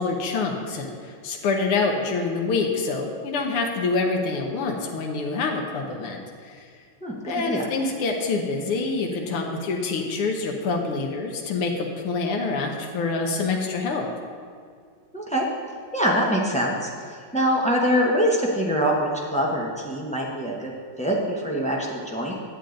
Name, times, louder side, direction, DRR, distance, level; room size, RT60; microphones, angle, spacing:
voice 1, 0.0-6.6 7.3-14.1, left 4 dB, 85° left, 1 dB, 1.9 m, -26 dB
voice 2, 7.0-7.7 15.1-15.5 15.9-20.7 21.0-22.3, equal, 10° left, -3 dB, 0.3 m, -24 dB
10.0 x 8.5 x 3.9 m, 2.1 s
omnidirectional pair, 2.3 m